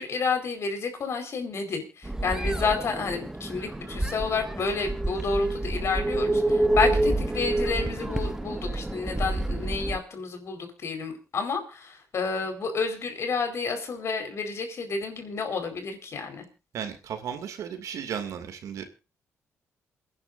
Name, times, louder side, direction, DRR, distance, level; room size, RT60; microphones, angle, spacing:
voice 1, 0.0-16.5, left 4 dB, 55° left, 6 dB, 4.6 m, -30 dB
sound 1, 2.0-10.0, right 2 dB, 10° right, 0.9 m, -28 dB
voice 2, 16.7-18.8, right 8 dB, 75° right, 7 dB, 2.5 m, -35 dB
28.5 x 10.5 x 2.6 m, 0.29 s
cardioid pair, 95°, 6 cm